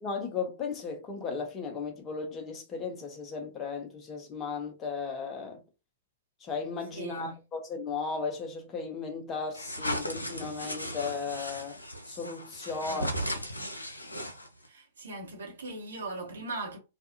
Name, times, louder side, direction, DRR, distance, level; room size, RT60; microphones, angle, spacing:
voice 1, 0.0-5.6 6.4-13.2, left 5 dB, 25° left, 0.8 m, -36 dB
voice 2, 6.9-7.4 12.8-13.2 14.6-16.8, right 3 dB, 65° right, 1.0 m, -39 dB
sound 1, 9.5-14.7, equal, 85° left, 0.5 m, -36 dB
2.6 x 2.3 x 2.6 m
figure-of-eight pair, 105°, 0 cm